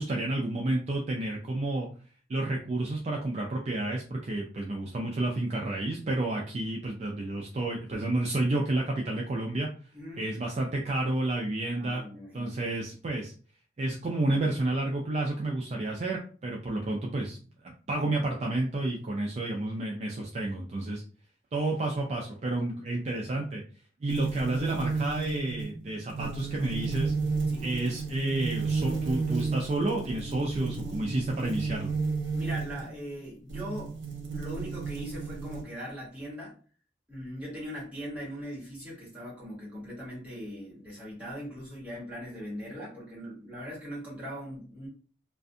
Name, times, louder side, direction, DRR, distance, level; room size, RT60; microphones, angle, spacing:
voice 1, 0.0-1.9 2.3-9.7 10.2-12.0 12.3-13.3 13.8-17.4 17.6-21.0 21.5-23.6 24.0-27.1 27.6-31.9, right 2 dB, 35° right, -1 dB, 0.3 m, -30 dB
voice 2, 11.7-12.5 27.5-27.6 32.3-33.9 34.3-36.5 37.1-44.9, equal, 10° right, -7 dB, 1.1 m, -40 dB
sound 1, 24.1-32.9 33.5-35.6, right 4 dB, 80° right, 0.8 m, -32 dB
2.4 x 2.2 x 2.5 m, 0.41 s
head